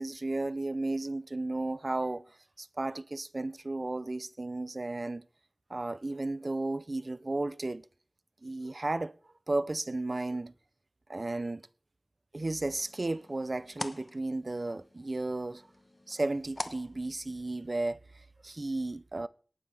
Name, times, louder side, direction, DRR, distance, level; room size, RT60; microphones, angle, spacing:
voice 1, 0.0-2.3 2.6-5.3 5.7-7.8 8.4-9.1 9.5-10.5 11.1-11.7 12.3-15.6 16.1-18.0 18.4-19.3, right 2 dB, 50° right, 0.6 m, -34 dB
sound 1, 12.4-17.8, left 1 dB, 35° left, 1.1 m, -46 dB
18.5 x 9.8 x 3.5 m
wide cardioid pair, 55°, 0 cm